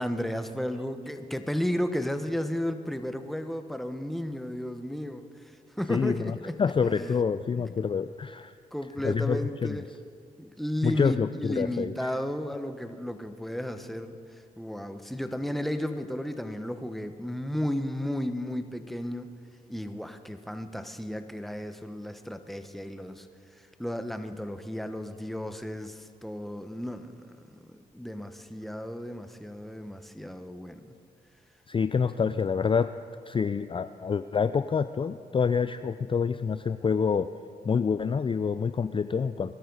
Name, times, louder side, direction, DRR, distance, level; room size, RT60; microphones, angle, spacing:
voice 1, 0.0-6.5 6.8-7.2 7.5-7.8 8.7-9.9 10.4-19.3 19.7-31.0, equal, ahead, 8 dB, 1.1 m, -34 dB
voice 2, 5.9-8.5 9.0-9.8 10.8-12.1 31.7-32.9 33.3-37.3 37.6-39.5, left 6 dB, 30° left, 12 dB, 0.4 m, -27 dB
21.5 x 12.5 x 4.0 m, 2.2 s
supercardioid pair, 45°, 17 cm